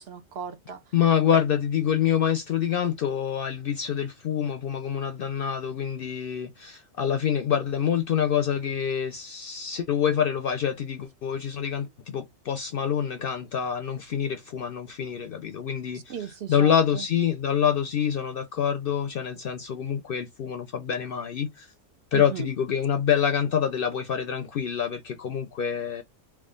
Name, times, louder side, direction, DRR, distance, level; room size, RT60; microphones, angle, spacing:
voice 1, 0.0-0.9 15.9-17.1 22.1-22.5, right 8 dB, 60° right, 0.7 m, -37 dB
voice 2, 0.9-16.1 16.5-21.7 22.1-26.0, left 8 dB, 65° left, 0.6 m, -26 dB
3.5 x 2.3 x 3.6 m
omnidirectional pair, 1.3 m